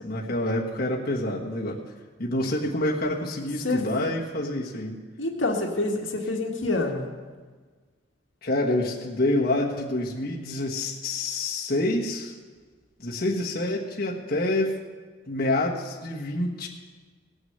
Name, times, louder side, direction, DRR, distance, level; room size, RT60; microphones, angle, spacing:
voice 1, 0.0-1.8 2.2-5.0 8.4-12.3 13.0-14.8 15.3-16.7, left 1 dB, 50° left, -3 dB, 1.4 m, -27 dB
voice 2, 5.2-7.1, left 2 dB, 85° left, 1 dB, 1.9 m, -27 dB
18.5 x 6.4 x 7.9 m, 1.4 s
head